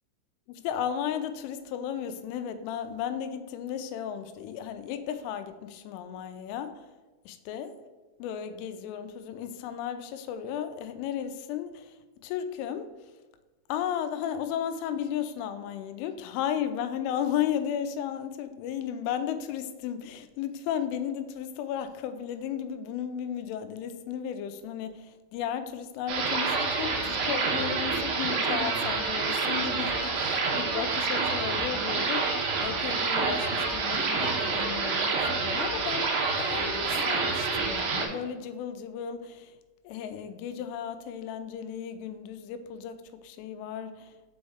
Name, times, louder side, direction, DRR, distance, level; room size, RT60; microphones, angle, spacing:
voice 1, 0.5-6.9 7.3-7.9 8.2-12.0 12.2-12.9 13.7-39.5 39.8-44.2, left 9 dB, 90° left, 3.1 m, -34 dB
sound 1, 26.1-38.1, right 4 dB, 85° right, 2.1 m, -28 dB
6.2 x 5.2 x 3.5 m
omnidirectional pair, 5.5 m